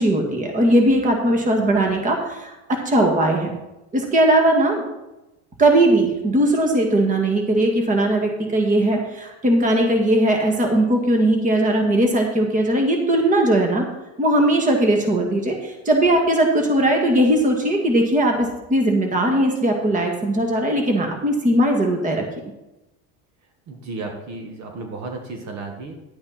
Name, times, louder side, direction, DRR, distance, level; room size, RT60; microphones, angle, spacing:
voice 1, 0.0-3.5 3.9-4.8 5.6-13.9 14.2-22.2, right 1 dB, 20° right, 2 dB, 1.9 m, -19 dB
voice 2, 23.7-25.9, right 3 dB, 50° right, 3 dB, 1.7 m, -33 dB
11.0 x 8.6 x 4.2 m, 0.97 s
cardioid pair, 145°, 36 cm